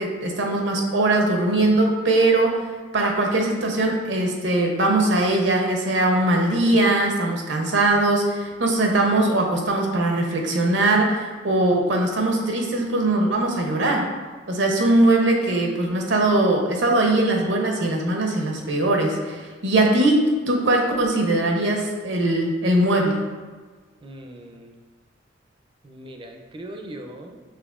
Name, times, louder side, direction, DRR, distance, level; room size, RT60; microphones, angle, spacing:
voice 1, 0.0-2.7 2.9-14.1 14.5-23.2, right 2 dB, 70° right, 1 dB, 0.7 m, -21 dB
voice 2, 24.0-24.8 25.8-27.4, right 1 dB, 25° right, 2 dB, 0.4 m, -40 dB
5.9 x 3.2 x 2.4 m, 1.4 s
head